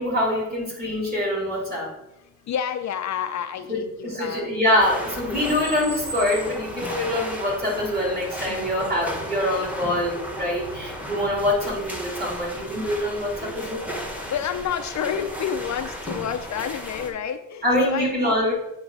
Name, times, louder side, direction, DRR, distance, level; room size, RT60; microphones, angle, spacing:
voice 1, 0.0-1.9 3.7-13.9 17.6-18.5, left 1 dB, 30° right, -2 dB, 2.5 m, -25 dB
voice 2, 2.5-4.5 8.5-8.7 14.3-18.4, left 8 dB, 60° left, 8 dB, 0.5 m, -29 dB
sound 1, 4.8-17.1, equal, 5° right, 1.1 m, -34 dB
8.2 x 2.9 x 5.3 m, 0.93 s
cardioid pair, 115°, 33 cm